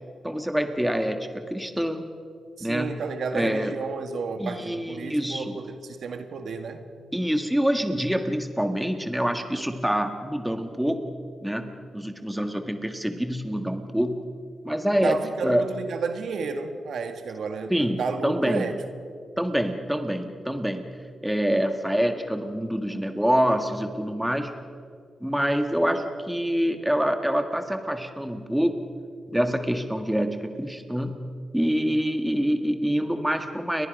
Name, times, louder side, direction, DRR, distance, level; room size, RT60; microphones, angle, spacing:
voice 1, 0.2-2.0 2.6-3.0 3.3-3.8 4.4-5.5 7.1-11.1 11.4-14.2 14.6-15.2 15.4-15.7 17.7-18.7 19.4-20.9 21.2-24.5 25.2-28.9 29.3-31.2 31.5-33.9, equal, 5° right, 6 dB, 1.6 m, -26 dB
voice 2, 2.6-6.9 15.0-18.7, right 5 dB, 75° right, 7 dB, 1.9 m, -32 dB
30.0 x 23.0 x 5.3 m, 2.3 s
wide cardioid pair, 115°, 0 cm